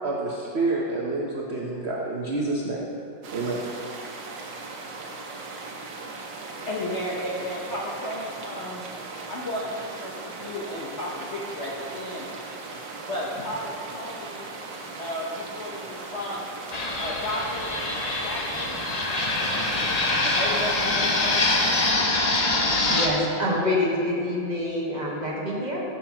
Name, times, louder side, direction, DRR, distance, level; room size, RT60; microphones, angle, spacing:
voice 1, 0.0-2.8 3.3-3.6, right 2 dB, 50° right, -3 dB, 0.8 m, -28 dB
sound 1, 3.2-21.9, right 3 dB, 70° right, 1.6 m, -38 dB
voice 2, 6.7-8.9 9.3-12.3 13.1-14.5 15.0-16.4 17.0-17.7 18.2-18.8 19.5-21.4, left 1 dB, 50° left, -4 dB, 1.0 m, -33 dB
Fixed-wing aircraft airplane, 16.7-23.1, left 2 dB, 70° left, 0.3 m, -24 dB
voice 3, 22.1-25.8, left 1 dB, 25° right, -5 dB, 1.4 m, -27 dB
14.5 x 7.2 x 2.9 m, 2.5 s
omnidirectional pair, 2.0 m